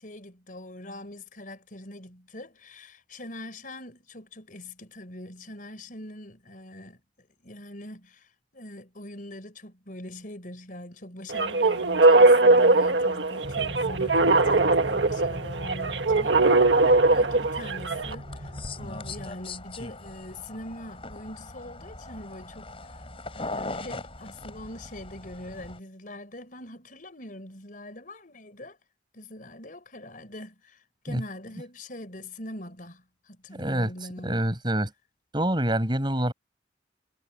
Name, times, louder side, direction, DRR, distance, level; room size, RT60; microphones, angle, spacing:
voice 1, 0.0-23.0 23.3-28.8 29.1-34.6, left 1 dB, 50° left, 4.8 m, -43 dB
sound 1, 11.3-18.1, right 2 dB, 90° right, 1.7 m, -20 dB
sound 2, 13.4-19.3, equal, 50° right, 6.8 m, -39 dB
sound 3, 18.0-25.8, left 2 dB, 30° left, 4.8 m, -40 dB
voice 2, 33.5-33.9 34.2-34.9 35.3-36.3, right 1 dB, 25° right, 5.7 m, -26 dB
head